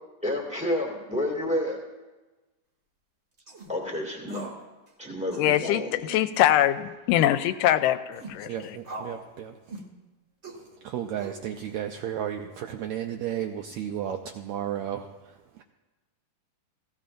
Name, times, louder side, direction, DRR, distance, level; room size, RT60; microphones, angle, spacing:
voice 1, 0.2-1.8 3.7-4.4 5.0-6.1, left 1 dB, 5° right, -1 dB, 1.0 m, -30 dB
sound 1, 3.4-3.7 4.3-4.6 4.9-5.0 5.3-5.6 6.3-6.6 7.2-7.5 8.1-8.4 8.8-9.2 9.7-9.9 10.4-10.6 11.2-11.7, right 2 dB, 35° right, 1.2 m, -41 dB
voice 2, 5.4-8.8, left 12 dB, 80° left, 12 dB, 2.1 m, -23 dB
voice 3, 8.4-9.8 10.6-15.6, right 10 dB, 90° right, 4 dB, 1.6 m, -34 dB
18.5 x 16.0 x 2.5 m, 1.2 s
omnidirectional pair, 3.9 m